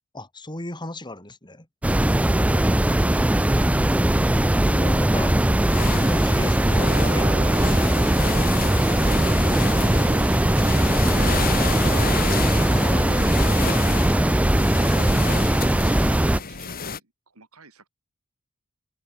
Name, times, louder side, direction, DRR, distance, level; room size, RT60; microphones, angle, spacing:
voice 1, 0.1-1.7 3.7-4.4 4.6-5.4 5.8-7.9 12.3-13.6, left 1 dB, 20° left, 3.8 m, -35 dB
sound 1, 1.8-16.4, right 1 dB, 5° right, 0.4 m, -20 dB
voice 2, 2.3-2.7 15.9-17.9, right 3 dB, 80° right, 5.0 m, -47 dB
sound 2, 3.4-17.0, left 5 dB, 45° left, 2.8 m, -32 dB
Brass instrument, 6.6-12.5, right 3 dB, 35° right, 2.3 m, -37 dB
open air
head